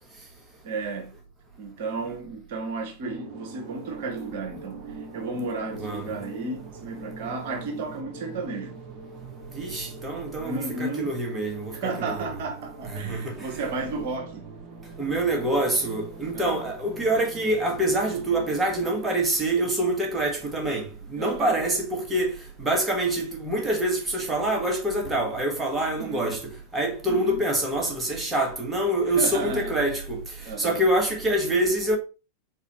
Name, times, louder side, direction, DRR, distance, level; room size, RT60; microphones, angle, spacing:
voice 1, 0.6-1.1 1.6-4.8 5.1-8.8 10.4-11.1 11.7-14.5 16.3-16.6 21.2-21.5 26.0-26.3 27.1-27.4 29.1-29.7 30.5-30.8, right 3 dB, 50° right, 1.1 m, -33 dB
sound 1, 3.0-19.2, right 3 dB, 30° right, 1.1 m, -43 dB
voice 2, 5.8-6.1 9.5-12.3 12.8-13.5 15.0-22.3 22.6-26.4 26.7-30.2 30.6-32.0, right 1 dB, 15° right, 1.6 m, -26 dB
4.1 x 4.1 x 3.1 m
figure-of-eight pair, 90°, 0 cm